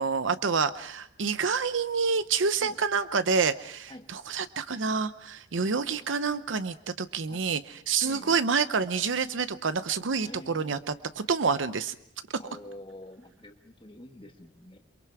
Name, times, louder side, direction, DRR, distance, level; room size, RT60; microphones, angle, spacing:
voice 1, 0.0-7.6 7.9-12.0, right 5 dB, 80° right, 12 dB, 0.7 m, -28 dB
voice 2, 8.0-8.4 10.2-10.8 12.4-14.8, left 1 dB, 25° left, 4 dB, 1.7 m, -47 dB
28.5 x 23.5 x 4.8 m, 0.73 s
head